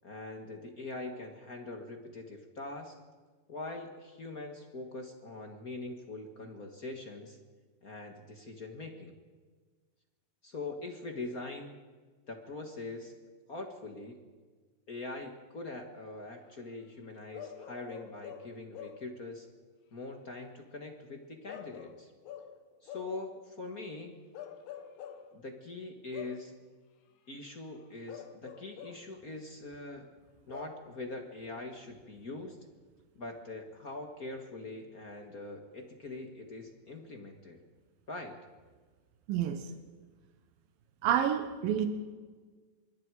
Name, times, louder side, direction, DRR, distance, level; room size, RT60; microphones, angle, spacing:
voice 1, 0.0-3.0 3.5-7.4 7.8-9.1 10.4-11.8 12.3-13.1 13.5-14.2 14.9-19.5 19.9-22.1 22.8-24.2 25.3-26.5 27.3-30.1 30.5-32.6 33.2-37.6 38.1-38.4, left 2 dB, 45° left, 4 dB, 1.2 m, -43 dB
Bark / Livestock farm animals working animals, 17.3-19.2 21.5-23.2 24.3-25.3 26.1-26.5 28.1-29.1 30.5-30.9, left 8 dB, 85° left, 3.1 m, -46 dB
voice 2, 39.3-39.7 41.0-41.9, right 9 dB, 90° right, 8 dB, 2.8 m, -28 dB
26.0 x 23.0 x 4.8 m, 1.4 s
omnidirectional pair, 4.0 m